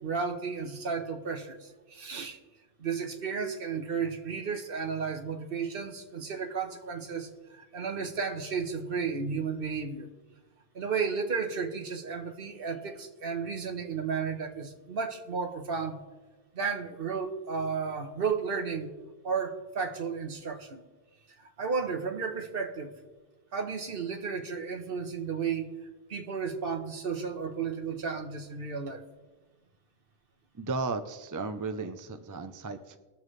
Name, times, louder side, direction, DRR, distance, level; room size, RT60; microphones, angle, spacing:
voice 1, 0.0-2.4 2.8-10.1 10.7-16.0 16.5-18.9 19.2-20.8 21.4-22.9 23.5-25.7 26.1-29.0, right 5 dB, 65° right, 5 dB, 1.2 m, -33 dB
voice 2, 30.5-33.0, right 3 dB, 25° right, 8 dB, 0.5 m, -35 dB
21.0 x 7.1 x 3.2 m, 1.2 s
omnidirectional pair, 1.0 m